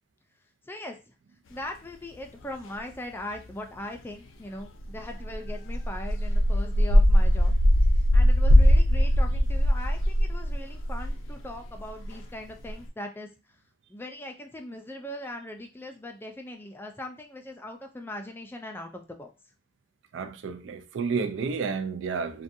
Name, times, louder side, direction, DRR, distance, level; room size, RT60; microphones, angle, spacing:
voice 1, 1.5-7.5 8.1-13.3 13.9-19.3, left 1 dB, 10° left, 0.3 m, -40 dB
sound 1, 4.8-12.1 12.6-12.7, equal, 80° left, 0.4 m, -21 dB
voice 2, 20.1-22.4, right 5 dB, 70° right, 0.4 m, -31 dB
2.5 x 2.2 x 2.6 m
head